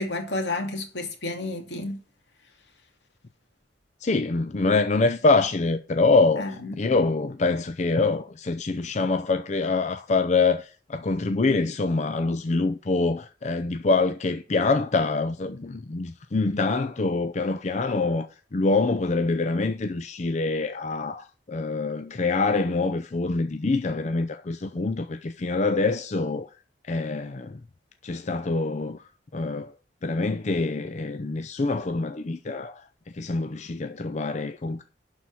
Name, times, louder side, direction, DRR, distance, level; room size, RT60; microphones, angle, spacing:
voice 1, 0.0-2.0 6.4-6.9, left 2 dB, 75° left, 2.5 m, -31 dB
voice 2, 4.0-6.5 6.8-26.5 26.9-27.6 28.0-29.7 30.0-32.9 33.1-34.8, left 3 dB, 40° left, 0.5 m, -25 dB
11.5 x 4.3 x 6.2 m
head